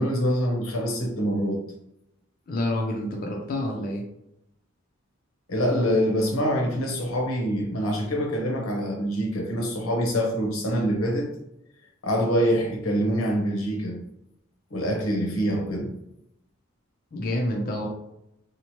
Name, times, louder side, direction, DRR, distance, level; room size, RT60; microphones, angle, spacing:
voice 1, 0.0-1.6 5.5-11.3 12.0-14.0 14.7-15.9, equal, 85° left, 1 dB, 0.8 m, -25 dB
voice 2, 2.5-4.0 17.1-17.9, left 1 dB, 45° left, 0 dB, 0.4 m, -28 dB
2.8 x 2.0 x 2.9 m, 0.81 s
head